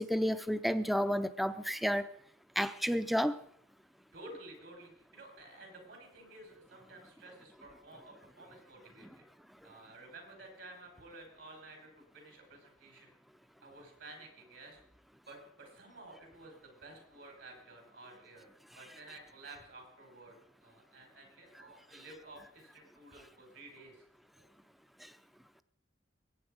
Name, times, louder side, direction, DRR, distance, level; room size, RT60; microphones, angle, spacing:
voice 1, 0.0-2.1 2.6-3.4 21.9-22.0 25.0-25.1, equal, ahead, 12 dB, 0.5 m, -31 dB
voice 2, 4.1-9.2 9.6-13.1 13.6-14.8 15.2-18.5 18.7-24.0, right 2 dB, 70° right, 3 dB, 4.9 m, -53 dB
21.0 x 8.8 x 5.1 m, 0.68 s
head